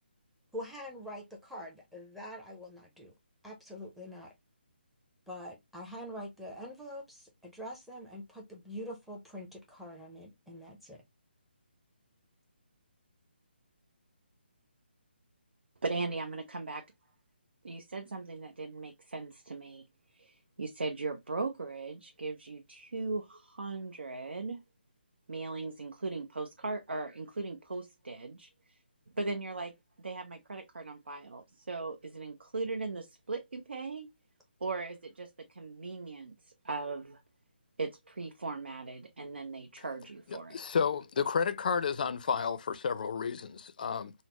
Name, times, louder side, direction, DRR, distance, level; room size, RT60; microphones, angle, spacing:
voice 1, 0.5-3.1 3.4-4.3 5.3-11.0, equal, ahead, 0.6 m, -44 dB
voice 2, 15.8-16.8 17.6-19.8 20.1-24.6 25.3-28.8 29.2-34.1 34.6-37.2 37.8-40.6, right 3 dB, 85° right, 0.6 m, -38 dB
voice 3, 40.5-44.1, left 6 dB, 50° left, 0.4 m, -31 dB
4.0 x 2.0 x 2.9 m
hypercardioid pair, 160°, 6 cm